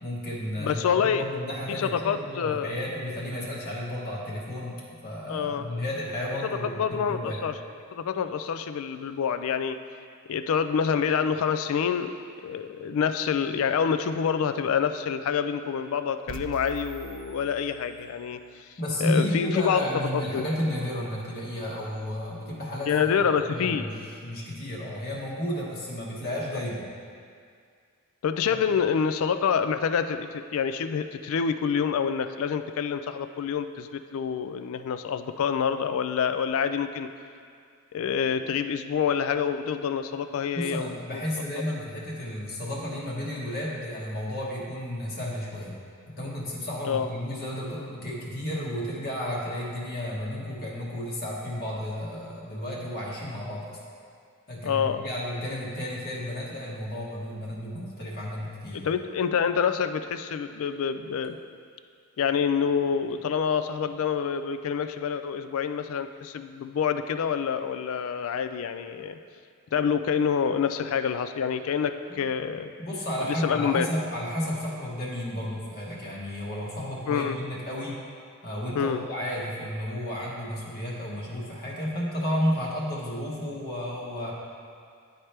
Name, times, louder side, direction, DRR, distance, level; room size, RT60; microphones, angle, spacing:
voice 1, 0.0-7.4 18.8-22.9 23.5-26.9 28.5-28.6 40.5-45.7 46.1-53.8 54.5-58.9 72.1-72.2 72.8-78.0 78.4-84.3, left 1 dB, 45° left, -5 dB, 1.1 m, -32 dB
voice 2, 0.6-1.2 1.8-2.7 5.3-5.7 6.8-7.5 7.9-9.8 10.3-12.1 12.4-18.7 19.0-19.9 20.3-20.4 22.9-23.9 28.2-37.1 37.9-41.2 46.8-47.1 54.6-55.1 58.7-61.4 62.2-69.2 69.7-72.7 73.2-73.9 77.1-77.4 78.7-79.0, left 7 dB, 65° left, 10 dB, 0.3 m, -27 dB
sound 1, 16.3-18.3, right 7 dB, 40° right, 0.3 m, -43 dB
10.5 x 4.3 x 3.3 m, 2.2 s
head